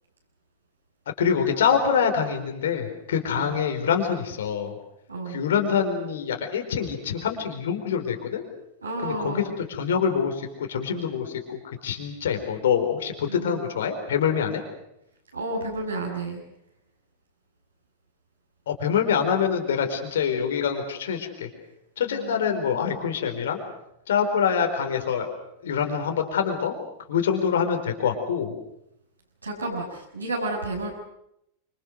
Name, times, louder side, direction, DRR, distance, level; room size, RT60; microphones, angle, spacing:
voice 1, 1.2-4.7 5.3-8.4 9.0-9.4 9.7-14.6 18.7-21.5 22.0-23.6 24.1-25.3 25.6-26.8 27.1-28.5, left 7 dB, 60° left, 5 dB, 4.6 m, -25 dB
voice 2, 5.1-5.4 8.8-9.5 13.3-13.6 15.3-16.4 22.1-23.0 27.5-27.6 29.4-30.9, right 2 dB, 80° right, -3 dB, 6.7 m, -32 dB
27.5 x 26.5 x 6.5 m, 0.80 s
figure-of-eight pair, 90°, 0 cm